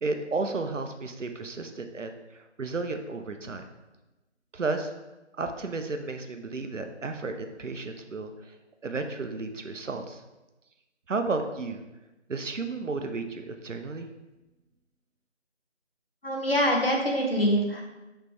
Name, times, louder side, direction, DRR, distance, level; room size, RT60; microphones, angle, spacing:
voice 1, 0.0-3.7 4.5-4.9 5.4-8.5 8.8-10.2 11.1-11.8 12.3-14.1, right 3 dB, 85° right, 6 dB, 0.6 m, -33 dB
voice 2, 16.2-17.8, equal, 50° left, 0 dB, 0.9 m, -24 dB
5.1 x 3.2 x 3.0 m, 1.0 s
figure-of-eight pair, 170°, 36 cm